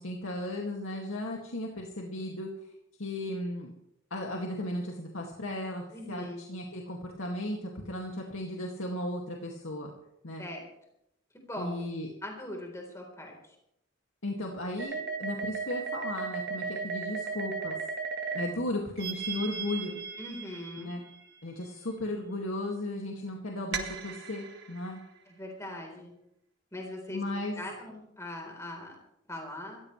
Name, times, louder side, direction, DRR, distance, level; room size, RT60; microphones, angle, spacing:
voice 1, 0.0-2.5 3.0-3.7 4.1-9.9 10.2-10.4 11.6-12.1 14.2-17.8 18.3-20.0 20.8-21.0 21.4-25.0 27.1-27.6, left 1 dB, 90° left, 0 dB, 2.2 m, -35 dB
voice 2, 5.9-6.4 10.4-10.6 11.3-11.9 12.2-13.6 20.2-21.0 25.3-26.1 26.7-27.2 27.6-29.0 29.3-29.8, left 1 dB, 15° left, 1 dB, 3.9 m, -41 dB
sound 1, 14.8-18.5 19.0-21.2 23.7-24.8, right 5 dB, 55° right, 1.7 m, -35 dB
26.0 x 14.5 x 3.3 m, 0.80 s
head